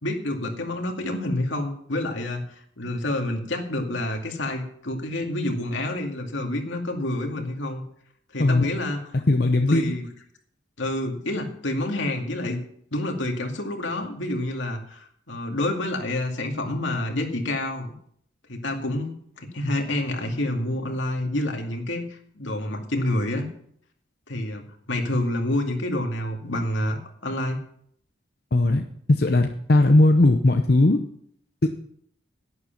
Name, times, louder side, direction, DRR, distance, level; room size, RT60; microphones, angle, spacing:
voice 1, 0.0-2.5 2.8-7.8 8.3-9.2 9.7-10.1 10.8-12.6 12.9-17.9 18.5-23.5 24.3-27.6, left 1 dB, 80° left, 3 dB, 2.3 m, -28 dB
voice 2, 9.3-9.9 28.5-31.0 31.6-31.7, left 2 dB, 50° left, 4 dB, 0.8 m, -18 dB
11.0 x 10.0 x 5.9 m, 0.65 s
head